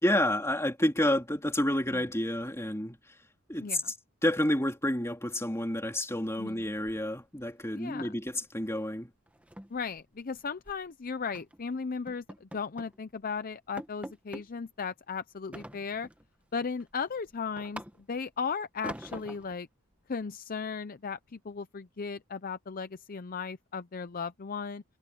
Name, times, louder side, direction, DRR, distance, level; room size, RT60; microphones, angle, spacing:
voice 1, 0.0-3.0 3.5-3.8 4.2-9.1, left 1 dB, 10° left, 3.1 m, -29 dB
sound 1, 6.6-7.4 7.7-7.9 8.3-8.5 8.8-8.9 9.3-10.8 11.3-11.6 12.1-13.0 13.3-13.4 13.8-14.5 15.5-16.3 16.7-18.3 18.8-19.6, right 1 dB, 5° right, 1.5 m, -45 dB
voice 2, 7.7-8.1 9.7-16.1 16.5-17.8 18.1-19.7 20.1-24.8, left 5 dB, 40° left, 0.6 m, -36 dB
head